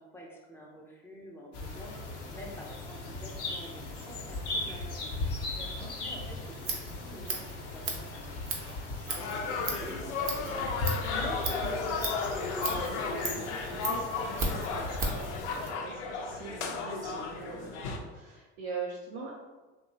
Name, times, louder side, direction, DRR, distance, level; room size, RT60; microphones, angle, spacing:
voice 1, 0.0-5.1 6.0-12.1, left 1 dB, 5° left, -2 dB, 0.6 m, -48 dB
sound 1, 1.5-15.7, left 2 dB, 45° left, 0.7 m, -38 dB
voice 2, 5.5-5.9 12.6-15.2 15.5-19.4, right 4 dB, 75° right, -5 dB, 0.6 m, -43 dB
Scissors, 6.4-15.3, right 3 dB, 40° right, 0.7 m, -37 dB
sound 2, 9.1-18.0, left 4 dB, 85° left, 0.5 m, -34 dB
2.7 x 2.2 x 2.6 m, 1.2 s
hypercardioid pair, 75°, 34 cm